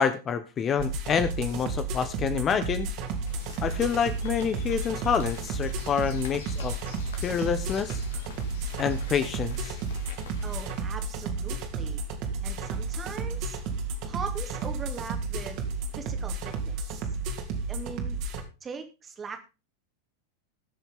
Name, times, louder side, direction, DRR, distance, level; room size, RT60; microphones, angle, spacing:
voice 1, 0.0-2.9 3.6-6.7 7.2-8.0 8.8-9.8, left 7 dB, 25° left, 11 dB, 1.0 m, -27 dB
sound 1, 0.8-18.4, right 3 dB, 45° right, 2.9 m, -32 dB
sound 2, 3.2-10.8, left 3 dB, 60° left, 2.7 m, -44 dB
voice 2, 10.4-12.0 12.4-13.6 14.1-15.7 16.0-17.1 17.7-18.2 18.6-19.4, right 5 dB, 20° right, 6 dB, 2.5 m, -40 dB
20.5 x 7.0 x 3.7 m, 0.30 s
figure-of-eight pair, 90°, 0 cm